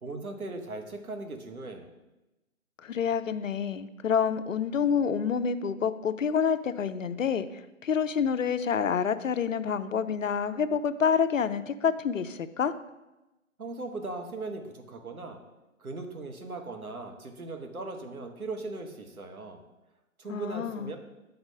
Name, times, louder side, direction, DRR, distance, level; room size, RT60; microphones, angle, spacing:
voice 1, 0.0-1.9 13.6-15.4 15.8-19.6 20.2-21.0, right 3 dB, 85° right, 5 dB, 1.2 m, -38 dB
voice 2, 2.8-12.7 20.3-20.9, left 7 dB, 65° left, 13 dB, 0.5 m, -28 dB
6.7 x 4.1 x 5.5 m, 1.0 s
figure-of-eight pair, 155°, 42 cm